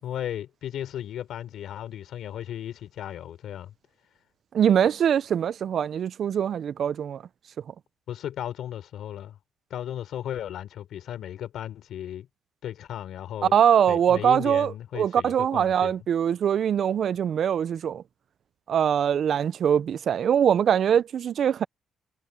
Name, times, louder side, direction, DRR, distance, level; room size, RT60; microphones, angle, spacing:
voice 1, 0.0-3.7 8.1-9.4 9.7-12.3 12.6-13.5 13.9-16.0, left 10 dB, 75° left, 3.5 m, -35 dB
voice 2, 4.5-7.2 13.5-18.0 18.7-21.6, right 8 dB, 60° right, 0.4 m, -23 dB
cardioid pair, 90°, 0 cm